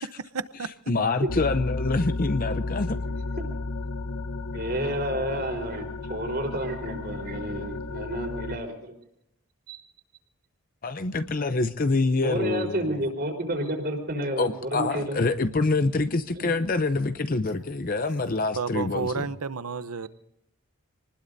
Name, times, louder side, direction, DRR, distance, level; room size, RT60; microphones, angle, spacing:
voice 1, 0.5-3.0 10.8-12.8 14.4-19.3, left 3 dB, 40° left, 0.6 m, -26 dB
sound 1, 1.3-8.6, left 3 dB, 75° left, 0.8 m, -33 dB
voice 2, 4.5-8.9 9.7-9.8 12.2-15.2 16.3-16.5, right 1 dB, 45° right, 4.1 m, -30 dB
voice 3, 18.6-20.1, right 4 dB, 85° right, 0.8 m, -30 dB
26.5 x 20.0 x 2.7 m
head